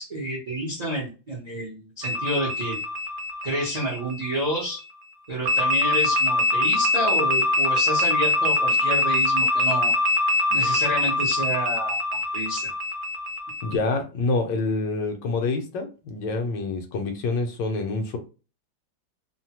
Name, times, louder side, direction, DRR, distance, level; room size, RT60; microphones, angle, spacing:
voice 1, 0.0-2.8 3.4-4.8 5.3-9.9 10.5-12.0 12.3-12.7, right 1 dB, 45° right, -4 dB, 0.5 m, -29 dB
sound 1, 2.0-4.6 5.5-13.8, left 2 dB, 70° right, 0.9 m, -23 dB
voice 2, 13.6-18.2, left 3 dB, 75° left, 5 dB, 1.2 m, -27 dB
3.1 x 2.1 x 2.8 m, 0.33 s
omnidirectional pair, 2.1 m